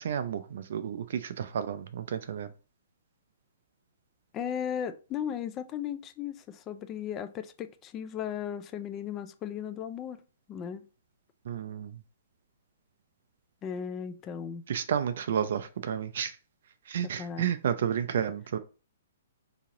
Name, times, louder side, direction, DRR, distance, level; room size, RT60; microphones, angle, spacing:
voice 1, 0.0-2.5 11.5-11.9 14.7-16.3 16.9-18.6, right 8 dB, 65° right, 0.3 m, -31 dB
voice 2, 4.3-10.2 10.5-10.8 13.6-14.6 17.0-17.5, left 8 dB, 25° left, 0.3 m, -36 dB
2.9 x 2.8 x 3.7 m
hypercardioid pair, 145°, 0 cm